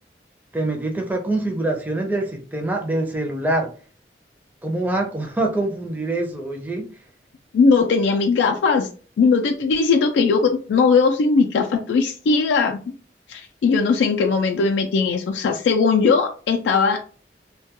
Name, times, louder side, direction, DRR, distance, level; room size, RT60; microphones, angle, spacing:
voice 1, 0.5-3.7 4.6-6.8, right 2 dB, 10° right, 1 dB, 0.4 m, -24 dB
voice 2, 7.5-8.9 9.2-12.9 13.3-17.0, left 4 dB, 85° left, 2 dB, 0.3 m, -19 dB
2.2 x 2.2 x 2.8 m, 0.39 s
head